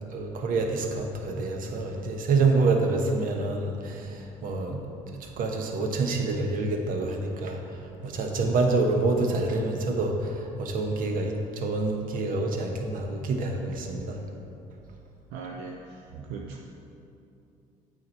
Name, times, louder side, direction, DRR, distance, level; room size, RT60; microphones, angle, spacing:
voice 1, 0.1-4.8 5.1-14.2 16.1-16.2, right 3 dB, 55° right, 3 dB, 1.1 m, -27 dB
voice 2, 15.3-16.6, right 4 dB, 75° right, 0 dB, 0.6 m, -39 dB
8.3 x 4.7 x 4.4 m, 2.6 s
hypercardioid pair, 65°, 16 cm